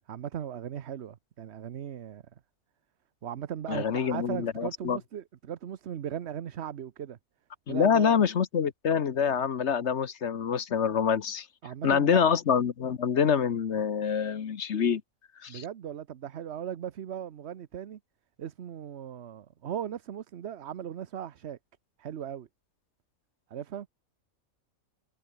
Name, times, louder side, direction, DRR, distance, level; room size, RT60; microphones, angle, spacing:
voice 1, 0.0-2.2 3.2-7.2 7.7-8.2 11.6-12.3 15.5-18.0 18.4-21.6 22.0-22.5 23.5-23.9, right 9 dB, 55° right, 1.0 m, -38 dB
voice 2, 3.7-5.0 7.7-11.5 11.8-15.0 15.4-15.6, left 7 dB, 60° left, 1.3 m, -26 dB
omnidirectional pair, 1.4 m